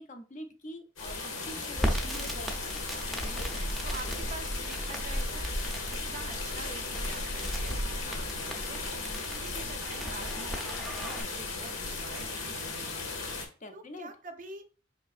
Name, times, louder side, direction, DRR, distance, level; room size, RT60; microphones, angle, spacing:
voice 1, 0.0-3.1 8.1-8.3 8.9-9.3 13.6-14.1, left 1 dB, 40° left, 6 dB, 0.6 m, -46 dB
sound 1, 1.0-13.5, left 2 dB, 90° left, 1.0 m, -35 dB
voice 2, 1.5-2.4 3.2-5.5 5.9-14.7, right 3 dB, 45° right, 7 dB, 0.5 m, -47 dB
Crackle, 1.8-11.2, equal, ahead, 0.6 m, -38 dB
4.8 x 3.2 x 2.5 m, 0.35 s
head